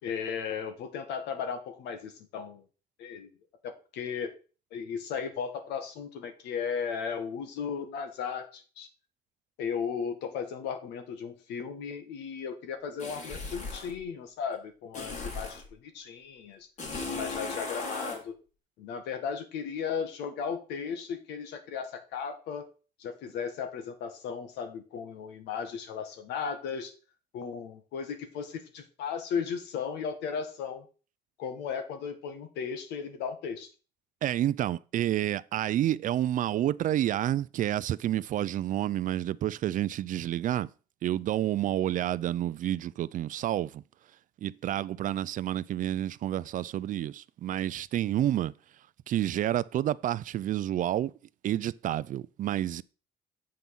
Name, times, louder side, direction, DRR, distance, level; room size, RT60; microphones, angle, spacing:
voice 1, 0.0-2.6 3.0-3.3 3.6-4.3 4.7-8.9 9.6-16.7 17.1-18.3 18.8-22.7 23.0-26.9 27.3-30.9 31.4-33.7, left 6 dB, 85° left, 1.8 m, -36 dB
sound 1, 13.0-13.9 14.9-15.7 16.8-18.2, left 3 dB, 45° left, 3.3 m, -37 dB
voice 2, 34.2-40.7 41.0-43.8 44.4-48.5 49.1-51.1 51.4-52.8, right 12 dB, 50° right, 0.4 m, -29 dB
7.7 x 5.4 x 5.9 m
cardioid pair, 110°, 17 cm